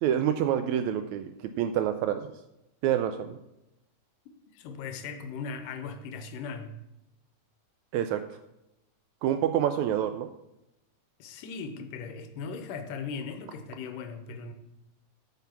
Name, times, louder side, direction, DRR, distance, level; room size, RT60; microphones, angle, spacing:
voice 1, 0.0-2.3 2.8-3.4 7.9-8.2 9.2-10.3, right 10 dB, 80° right, 8 dB, 1.7 m, -27 dB
voice 2, 4.5-6.7 11.2-14.5, left 5 dB, 90° left, 8 dB, 2.5 m, -38 dB
9.1 x 5.9 x 5.8 m, 0.87 s
omnidirectional pair, 3.7 m